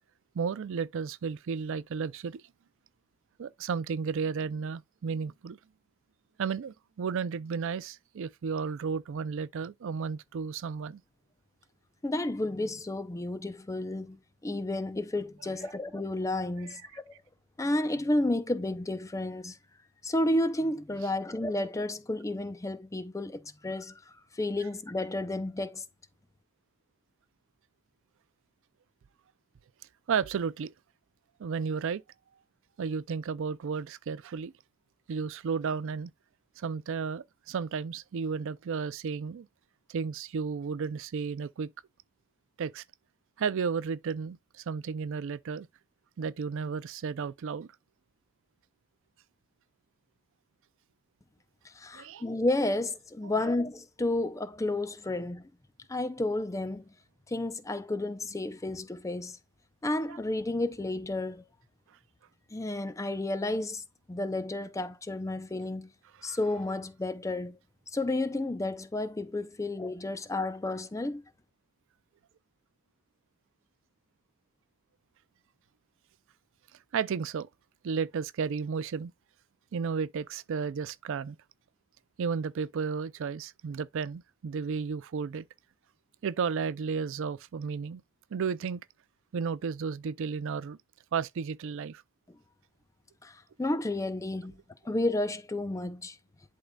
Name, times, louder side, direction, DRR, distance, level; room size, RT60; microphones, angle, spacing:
voice 1, 0.3-2.4 3.4-5.6 6.4-11.0 16.6-16.8 30.1-30.7 31.4-32.0 32.8-34.5 35.1-36.1 36.6-39.5 39.9-41.7 42.6-42.8 43.4-45.7 46.2-47.7 51.9-52.2 53.2-53.5 60.1-60.2 66.2-66.4 76.9-77.5 77.8-79.1 79.7-81.4 82.2-85.4 86.2-88.0 88.3-88.8 89.3-90.8 91.1-92.0, right 6 dB, 60° right, 0.4 m, -33 dB
voice 2, 12.0-17.1 17.6-19.6 20.0-24.0 24.3-25.8 51.6-55.5 55.9-56.8 57.3-59.4 59.8-61.4 62.5-65.9 66.2-67.6 67.9-71.2 93.2-94.6 94.8-96.2, left 2 dB, 15° left, 0.5 m, -31 dB
11.0 x 3.8 x 2.2 m
head